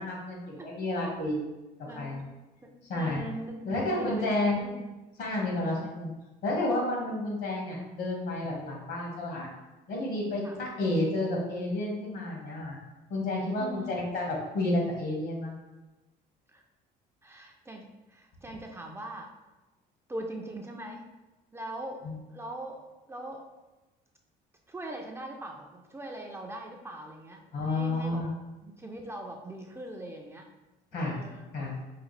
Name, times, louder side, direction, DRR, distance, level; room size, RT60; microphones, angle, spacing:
voice 1, 0.0-1.4 1.9-2.2 2.9-3.2 3.6-4.7 5.2-6.1 6.4-9.5 9.9-12.8 13.1-15.6 22.0-22.2 27.5-28.3 30.9-31.2 31.5-31.8, left 2 dB, 75° left, -2 dB, 1.4 m, -30 dB
voice 2, 1.8-2.2 2.6-4.9 5.8-5.9 10.4-10.6 13.6-14.0 16.5-16.6 17.2-19.3 20.1-21.0 21.5-23.5 24.7-28.2 28.6-30.5 30.9-31.5, right 1 dB, 15° right, 1 dB, 0.4 m, -41 dB
4.8 x 2.3 x 3.2 m, 1.1 s
cardioid pair, 110°, 17 cm